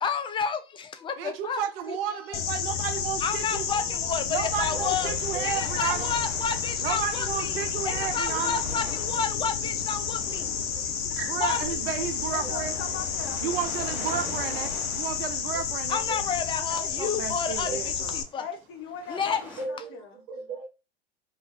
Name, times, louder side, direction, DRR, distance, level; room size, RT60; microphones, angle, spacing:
voice 1, 0.0-2.0 2.3-2.4 3.2-5.1 5.4-7.6 7.9-10.5 11.4-11.6 15.9-17.7 18.1-18.5 19.1-19.4, left 6 dB, 15° left, 0.3 m, -30 dB
voice 2, 1.2-3.6 4.3-6.1 6.8-8.6 11.3-12.8 13.4-16.0 17.0-18.2, right 9 dB, 70° right, 0.6 m, -32 dB
sound 1, 2.3-18.2, left 7 dB, 80° left, 0.5 m, -31 dB
sound 2, 3.4-19.7, equal, 5° right, 1.1 m, -46 dB
voice 3, 4.7-5.5 10.7-11.3 12.4-12.5 16.1-16.2 17.6-17.8 19.6-20.7, right 3 dB, 45° right, 0.9 m, -38 dB
voice 4, 12.3-13.4 16.7-17.2 18.3-20.1, left 6 dB, 45° left, 1.1 m, -40 dB
2.5 x 2.4 x 3.1 m
hypercardioid pair, 90°, 30 cm